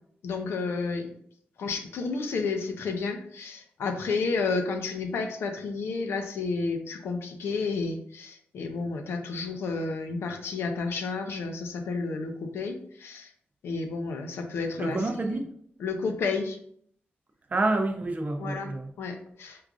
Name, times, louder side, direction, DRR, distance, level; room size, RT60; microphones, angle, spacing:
voice 1, 0.2-1.1 1.6-13.3 13.6-15.0 15.8-16.6 18.4-18.7 19.0-19.6, left 4 dB, 85° left, 0.5 m, -31 dB
voice 2, 14.8-15.5 17.5-18.9, right 2 dB, 40° right, 0.5 m, -28 dB
4.5 x 2.4 x 2.4 m
cardioid pair, 85°, 4 cm